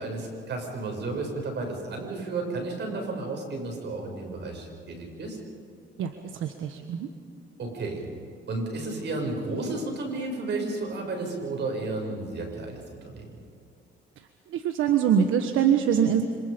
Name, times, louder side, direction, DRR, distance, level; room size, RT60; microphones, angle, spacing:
voice 1, 0.0-5.4 7.6-8.0 8.5-13.4, right 3 dB, 60° right, 2 dB, 7.2 m, -32 dB
voice 2, 6.0-7.1 14.5-16.2, right 8 dB, 85° right, 6 dB, 1.4 m, -24 dB
27.0 x 27.0 x 5.3 m, 2.5 s
cardioid pair, 90°, 20 cm